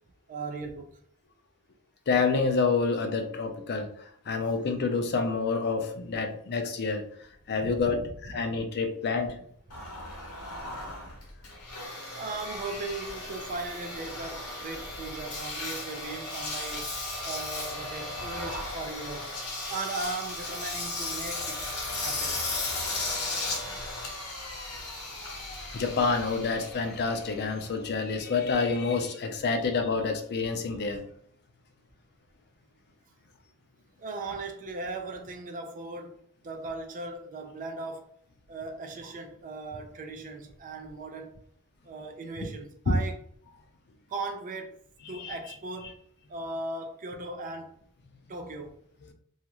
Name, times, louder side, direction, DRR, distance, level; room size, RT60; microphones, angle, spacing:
voice 1, 0.3-1.0 7.6-7.9 12.2-16.9 17.2-19.3 19.7-21.6 22.0-22.4 34.0-38.1 38.5-41.4 41.8-43.1 44.1-44.8 45.1-46.0 46.3-47.7 48.3-48.8, right 3 dB, 35° right, 0.4 m, -38 dB
voice 2, 2.1-7.0 7.5-9.3 25.7-31.0 42.9-43.0 45.0-45.4, left 4 dB, 50° left, 0.5 m, -28 dB
Engine, 9.7-28.1, left 2 dB, 80° left, 0.9 m, -36 dB
2.4 x 2.4 x 2.9 m
head